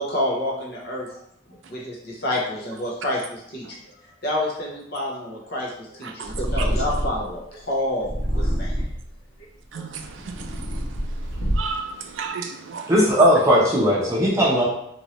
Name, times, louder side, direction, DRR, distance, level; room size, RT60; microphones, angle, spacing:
voice 1, 0.0-8.9 9.7-9.8, left 1 dB, 50° left, -3 dB, 0.7 m, -29 dB
voice 2, 6.0-6.6 9.7-12.9, right 5 dB, 70° right, 4 dB, 0.4 m, -34 dB
Purr, 6.2-7.3 8.0-9.1 9.8-11.9, equal, 85° left, 1.1 m, -26 dB
voice 3, 12.9-14.6, equal, 15° right, -5 dB, 0.7 m, -17 dB
2.9 x 2.6 x 3.0 m, 0.73 s
head